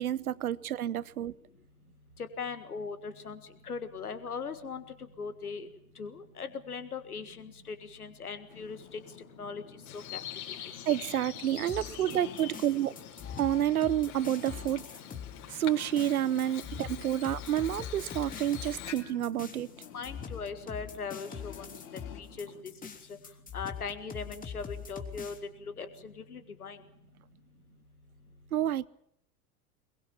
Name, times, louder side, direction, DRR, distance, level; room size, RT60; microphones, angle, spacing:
voice 1, 0.0-1.3 10.9-13.0 13.4-14.8 15.5-19.7 28.5-28.9, right 11 dB, 75° right, 0.8 m, -29 dB
voice 2, 2.4-3.4 3.6-4.8 5.2-5.7 6.0-9.0 9.4-9.6 10.1-10.2 19.9-21.7 22.2-22.7 23.5-25.3 25.6-26.8, left 5 dB, 85° left, 1.8 m, -39 dB
sound 1, 8.5-22.6, left 10 dB, 65° left, 2.7 m, -51 dB
Bird vocalization bird call bird song, 9.9-18.9, left 11 dB, 45° left, 5.2 m, -45 dB
sound 2, 11.7-25.4, left 7 dB, 20° left, 3.3 m, -43 dB
22.5 x 22.0 x 7.3 m
figure-of-eight pair, 80°, 44 cm